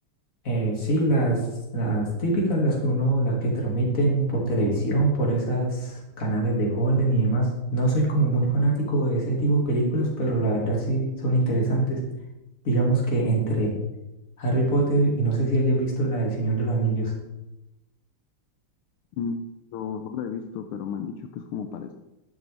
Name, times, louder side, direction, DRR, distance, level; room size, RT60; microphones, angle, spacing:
voice 1, 0.4-1.4 1.7-12.0 12.6-13.7 14.4-17.1, right 2 dB, 40° left, -2 dB, 2.5 m, -23 dB
voice 2, 19.7-21.9, left 6 dB, 80° left, 6 dB, 1.5 m, -32 dB
11.0 x 7.2 x 3.4 m, 0.95 s
omnidirectional pair, 2.4 m